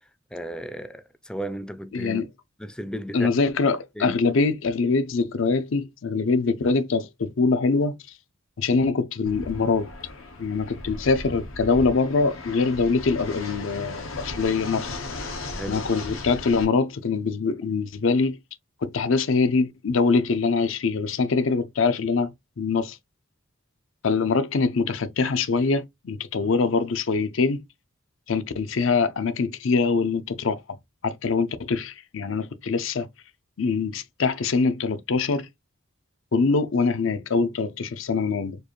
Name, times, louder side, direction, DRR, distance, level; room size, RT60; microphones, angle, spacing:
voice 1, 0.3-2.2 2.6-3.3 4.0-4.2 15.6-16.2, equal, 5° left, 0.4 m, -35 dB
voice 2, 1.9-2.3 3.1-8.0 8.6-9.9 10.4-15.0 15.7-18.4 18.8-23.0 24.0-27.6 28.3-30.6 31.0-33.1 33.6-35.5 36.3-38.6, left 4 dB, 70° left, 0.5 m, -23 dB
Fixed-wing aircraft airplane, 9.2-16.6, left 2 dB, 90° left, 1.0 m, -36 dB
4.5 x 2.5 x 3.0 m
head